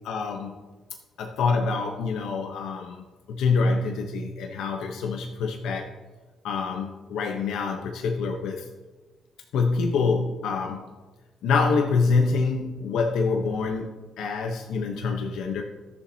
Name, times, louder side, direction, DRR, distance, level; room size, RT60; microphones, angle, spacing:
voice 1, 0.0-0.5 1.2-3.0 3.3-5.9 6.4-8.6 9.5-10.8 11.4-15.6, left 4 dB, 85° left, 1 dB, 0.8 m, -26 dB
14.0 x 7.1 x 2.8 m, 1.2 s
cardioid pair, 90°, 0 cm